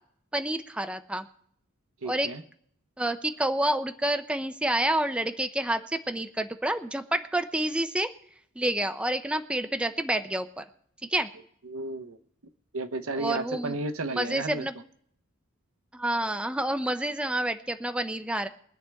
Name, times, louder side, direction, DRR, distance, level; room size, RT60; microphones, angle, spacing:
voice 1, 0.3-1.3 2.0-2.3 3.0-8.1 8.6-10.6 11.1-11.3 13.1-13.7 14.1-14.7 15.9-18.5, right 1 dB, 5° right, 8 dB, 0.5 m, -28 dB
voice 2, 2.0-2.4 11.6-12.2 12.7-14.7, right 2 dB, 80° right, 7 dB, 0.9 m, -33 dB
23.5 x 9.4 x 3.5 m, 0.67 s
head